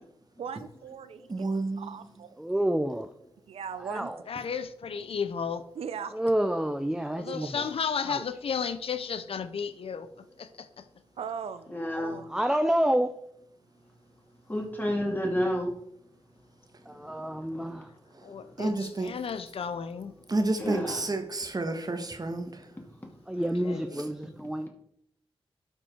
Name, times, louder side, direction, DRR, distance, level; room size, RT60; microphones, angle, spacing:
voice 1, 0.4-1.5 1.8-2.3 3.5-4.1 5.8-6.1 7.2-7.4 11.2-12.3, right 7 dB, 90° right, 0.6 m, -39 dB
voice 2, 1.3-2.1 18.1-19.1 20.3-22.7 23.9-24.1, right 2 dB, 40° right, 1.4 m, -31 dB
voice 3, 2.4-3.1 3.8-4.2 6.1-7.7 8.0-8.2 12.3-13.2 16.9-17.9 23.3-24.7, right 1 dB, 5° right, 0.5 m, -28 dB
voice 4, 4.3-5.6 7.2-10.8 18.2-20.1 23.4-24.0, left 6 dB, 70° left, 0.6 m, -34 dB
voice 5, 11.7-12.2 14.5-15.7 17.5-17.8 20.6-21.0, equal, 20° left, 2.6 m, -30 dB
12.0 x 4.4 x 4.5 m
cardioid pair, 65°, 10 cm